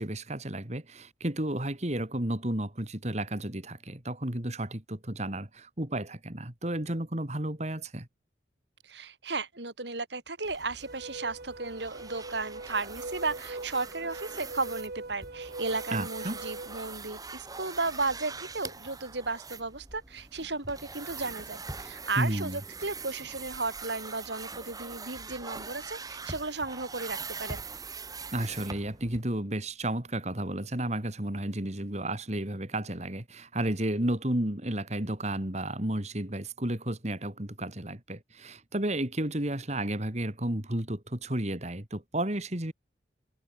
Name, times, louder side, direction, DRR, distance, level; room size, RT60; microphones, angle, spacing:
voice 1, 0.0-8.1 15.9-16.4 22.2-22.6 28.3-42.7, right 1 dB, 40° right, 2.7 m, -32 dB
voice 2, 8.8-27.6, right 3 dB, 75° right, 4.9 m, -34 dB
sound 1, 10.4-29.2, right 4 dB, 20° right, 3.3 m, -43 dB
sound 2, 10.8-16.8, right 2 dB, 55° right, 1.2 m, -42 dB
head